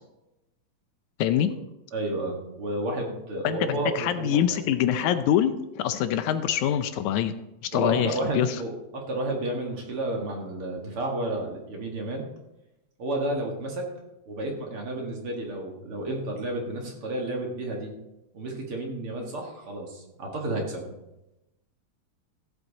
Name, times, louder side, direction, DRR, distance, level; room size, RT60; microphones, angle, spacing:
voice 1, 1.9-4.4 7.7-12.2 13.0-13.9 14.3-17.9 18.3-20.9, right 1 dB, 50° right, 0 dB, 2.5 m, -31 dB
voice 2, 3.4-7.3 7.6-8.6, left 10 dB, 80° left, 10 dB, 2.0 m, -25 dB
15.0 x 8.1 x 4.1 m, 0.94 s
omnidirectional pair, 3.5 m